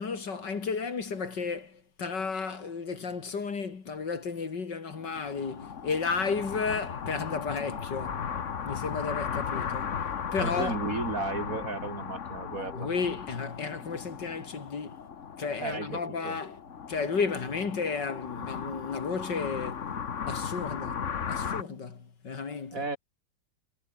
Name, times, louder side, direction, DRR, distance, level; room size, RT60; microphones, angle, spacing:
voice 1, 0.0-8.3 8.6-10.0 10.3-10.8 12.7-14.9 15.4-16.6 16.9-19.9 20.3-22.8, left 5 dB, 65° left, 3.1 m, -33 dB
sound 1, 4.9-21.6, left 7 dB, 45° left, 1.4 m, -36 dB
voice 2, 10.4-12.9 15.6-16.4 22.7-23.0, right 3 dB, 45° right, 3.6 m, -34 dB
omnidirectional pair, 2.1 m